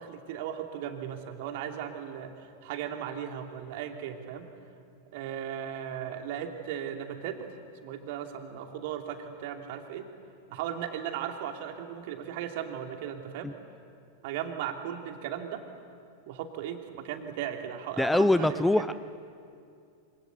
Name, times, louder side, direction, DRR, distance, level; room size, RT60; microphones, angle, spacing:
voice 1, 0.0-2.3 2.6-4.5 5.1-7.5 7.8-10.0 10.5-13.5 14.2-15.6 16.3-18.9, right 9 dB, 50° right, 4 dB, 2.9 m, -37 dB
voice 2, 18.0-18.9, left 2 dB, 5° left, 15 dB, 0.6 m, -23 dB
26.5 x 26.0 x 8.2 m, 2.4 s
figure-of-eight pair, 90°, 0 cm